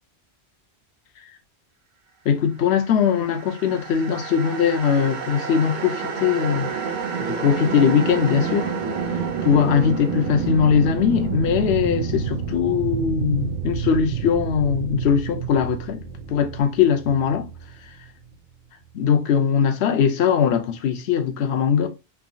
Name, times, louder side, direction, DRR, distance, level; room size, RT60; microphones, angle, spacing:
voice 1, 2.3-6.7 7.2-8.7 9.4-16.0 16.3-17.5 18.9-21.9, left 7 dB, 80° left, 0.9 m, -20 dB
sound 1, 3.1-18.3, right 6 dB, 55° right, 0.6 m, -29 dB
3.6 x 3.0 x 2.5 m
omnidirectional pair, 1.1 m